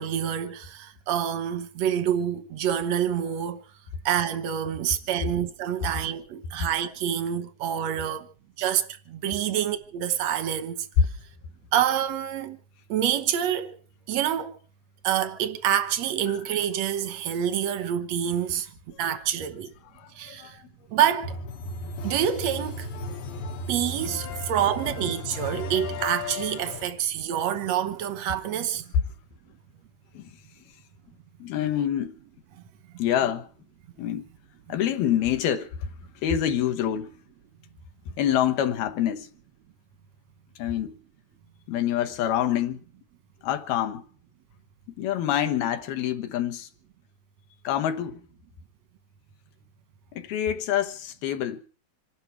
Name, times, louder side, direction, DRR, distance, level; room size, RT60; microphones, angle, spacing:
voice 1, 0.0-3.6 4.0-8.3 8.6-11.1 11.7-12.6 12.9-13.8 14.1-14.6 15.0-18.7 19.0-19.7 20.2-20.6 20.9-21.4 22.0-22.9 23.7-28.8, right 10 dB, 75° right, 1.5 m, -27 dB
voice 2, 20.0-20.5 30.1-30.3 31.4-32.2 33.0-33.5 34.0-34.2 34.7-35.9 36.2-37.1 38.1-39.3 40.6-41.0 41.7-42.8 43.4-44.0 45.0-46.7 47.6-48.2 50.1-51.6, left 10 dB, 70° left, 2.8 m, -26 dB
sound 1, 21.2-26.8, left 2 dB, 90° left, 3.6 m, -35 dB
26.5 x 12.0 x 4.5 m
omnidirectional pair, 4.7 m